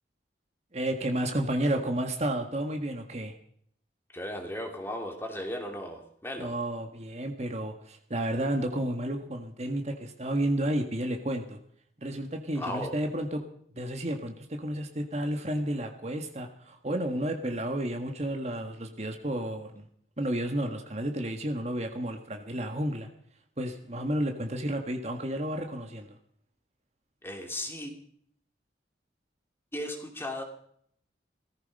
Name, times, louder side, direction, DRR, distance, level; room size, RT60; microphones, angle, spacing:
voice 1, 0.7-3.3 6.4-11.6 12.0-13.4 13.7-19.9 20.2-23.1 23.6-26.2, right 1 dB, 35° right, 4 dB, 1.7 m, -31 dB
voice 2, 4.1-6.5 12.6-12.9 27.2-27.9 29.7-30.4, left 1 dB, 15° left, 3 dB, 2.7 m, -36 dB
18.0 x 14.5 x 5.4 m, 0.64 s
head